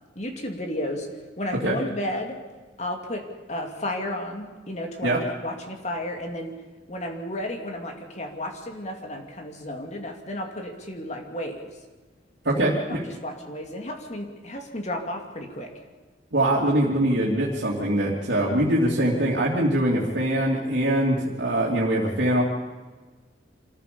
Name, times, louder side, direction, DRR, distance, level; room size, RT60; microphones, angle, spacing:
voice 1, 0.1-1.1 1.4-2.4 2.8-3.2 3.5-6.5 6.9-11.7 12.5-15.7, left 1 dB, 40° left, 3 dB, 2.7 m, -33 dB
voice 2, 12.4-13.0 16.3-22.4, right 1 dB, 70° right, -5 dB, 3.0 m, -23 dB
26.0 x 14.5 x 7.0 m, 1.3 s
head